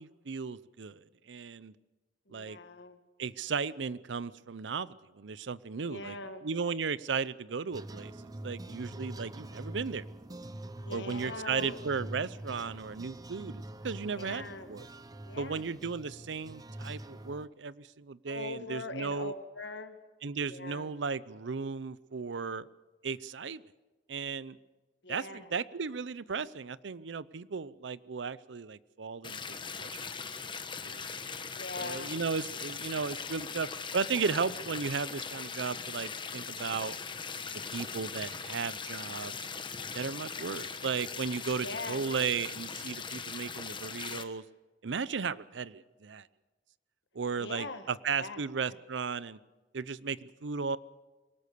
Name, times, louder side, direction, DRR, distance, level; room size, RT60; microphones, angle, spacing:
voice 1, 0.0-1.7 2.3-2.6 3.2-6.2 6.4-8.1 8.4-10.5 10.9-14.8 15.3-19.3 20.2-22.7 23.0-23.6 24.1-24.6 25.1-30.0 30.8-31.1 31.8-33.7 33.9-37.0 37.7-39.4 39.9-44.4 44.8-46.3 47.1-49.4 49.7-50.8, right 5 dB, 85° right, 18 dB, 0.6 m, -35 dB
voice 2, 2.3-3.0 5.8-6.5 10.8-11.8 14.1-14.7 15.2-15.6 18.3-20.0 20.4-20.9 25.0-25.5 31.5-32.3 41.6-42.0 47.4-48.8, left 3 dB, 75° left, 8 dB, 1.7 m, -42 dB
sound 1, 7.7-17.5, right 1 dB, 20° right, 0.7 m, -44 dB
sound 2, 29.2-44.2, left 5 dB, 25° left, 1.2 m, -40 dB
23.0 x 19.0 x 6.8 m, 1.2 s
head